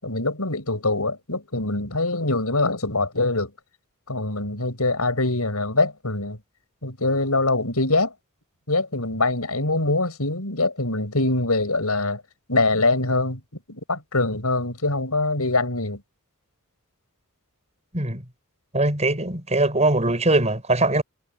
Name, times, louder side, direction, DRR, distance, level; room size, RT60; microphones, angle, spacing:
voice 1, 0.0-3.5 4.1-6.4 6.8-8.1 8.7-12.2 12.5-13.4 13.7-16.0, left 2 dB, 85° left, 7.1 m, -23 dB
voice 2, 18.7-21.0, right 2 dB, 30° right, 7.0 m, -21 dB
head